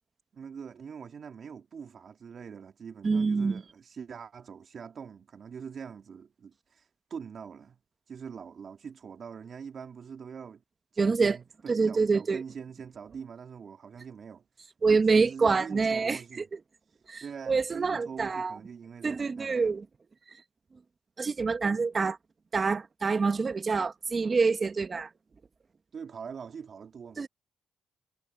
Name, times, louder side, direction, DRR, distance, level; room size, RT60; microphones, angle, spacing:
voice 1, 0.3-7.8 8.1-10.6 10.9-14.4 14.9-16.4 17.2-19.7 25.9-27.3, right 6 dB, 50° right, 2.7 m, -43 dB
voice 2, 3.0-3.6 11.0-11.4 11.7-12.4 14.8-16.6 17.1-18.6 19.0-19.8 21.2-22.2 22.5-25.1 27.2-27.3, right 4 dB, 35° right, 1.4 m, -26 dB
cardioid pair, 95°, 0 cm